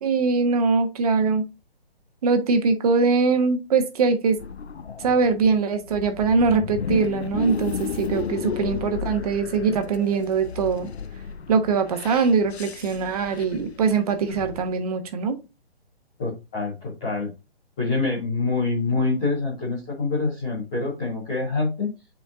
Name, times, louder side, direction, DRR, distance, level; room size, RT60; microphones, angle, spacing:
voice 1, 0.0-1.4 2.2-4.4 5.0-10.9 11.5-15.4, right 4 dB, 35° right, 1.1 m, -22 dB
sound 1, 4.4-14.7, left 7 dB, 90° left, 0.5 m, -34 dB
voice 2, 16.2-17.3 17.8-21.9, left 3 dB, 5° left, 0.4 m, -26 dB
8.9 x 4.5 x 2.4 m
figure-of-eight pair, 135°, 31 cm